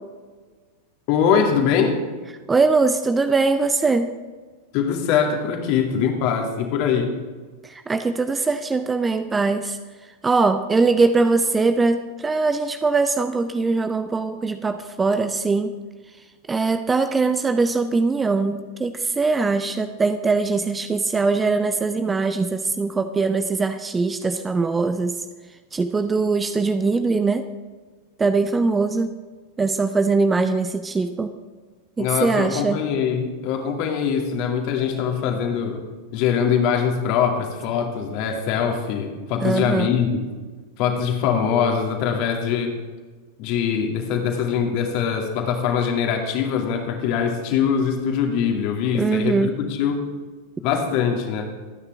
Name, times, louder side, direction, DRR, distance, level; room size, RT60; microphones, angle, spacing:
voice 1, 1.1-2.0 4.7-7.1 32.0-35.8 36.1-40.1 40.8-42.8 43.4-50.0 50.6-51.5, left 7 dB, 45° left, 3 dB, 2.4 m, -22 dB
voice 2, 2.5-4.1 7.6-9.8 10.2-15.7 16.5-25.2 25.7-27.5 28.2-29.1 29.6-31.3 32.0-32.8 39.4-39.9 48.9-49.6, right 4 dB, 15° right, 9 dB, 0.7 m, -21 dB
24.5 x 9.7 x 3.5 m, 1.4 s
figure-of-eight pair, 90°, 0 cm